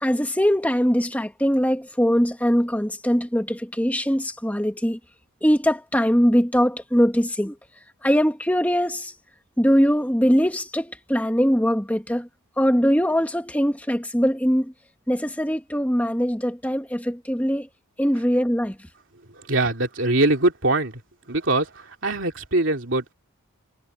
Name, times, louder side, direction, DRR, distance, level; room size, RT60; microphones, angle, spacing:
voice 1, 0.0-5.0 5.4-7.5 8.0-9.1 9.6-12.3 12.6-14.7 15.1-17.7 18.0-18.7, equal, 5° left, 2.0 m, -21 dB
voice 2, 19.3-21.0 21.3-23.1, right 2 dB, 55° right, 3.1 m, -23 dB
head